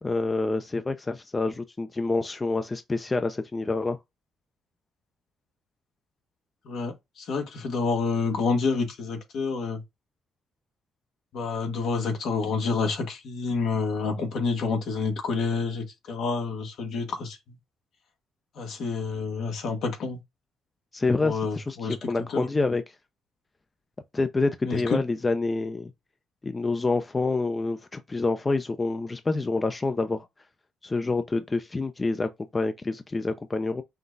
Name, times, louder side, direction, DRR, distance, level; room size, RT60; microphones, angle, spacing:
voice 1, 0.0-4.0 20.9-23.0 24.1-25.9 26.4-30.3 30.8-33.8, left 3 dB, 25° left, 0.5 m, -27 dB
voice 2, 6.6-9.8 11.3-17.6 18.5-20.2 21.2-22.4 24.6-25.0, left 4 dB, 70° left, 1.5 m, -28 dB
5.8 x 2.3 x 3.9 m
cardioid pair, 90°, 0 cm